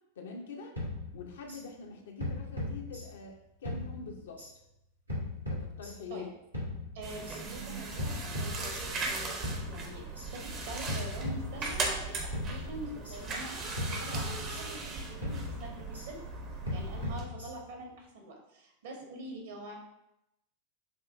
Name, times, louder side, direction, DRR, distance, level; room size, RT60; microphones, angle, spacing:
voice 1, 0.2-0.7 1.1-4.4 5.5-6.3, left 4 dB, 60° left, 2 dB, 0.6 m, -44 dB
sound 1, 0.8-1.6 2.2-3.4 3.6-4.5 5.1-6.2 6.5-7.4 8.0-9.1 9.4-10.3 10.9-12.0 12.3-13.2 13.8-14.9 15.2-16.1 16.7-17.8, left 2 dB, 85° right, 1.2 m, -38 dB
voice 2, 6.9-16.2 16.7-19.8, right 2 dB, 55° right, 1 dB, 1.0 m, -45 dB
sound 2, 7.0-17.2, right 3 dB, 30° right, 0.6 m, -38 dB
6.0 x 2.5 x 2.5 m, 0.85 s
figure-of-eight pair, 90°, 0 cm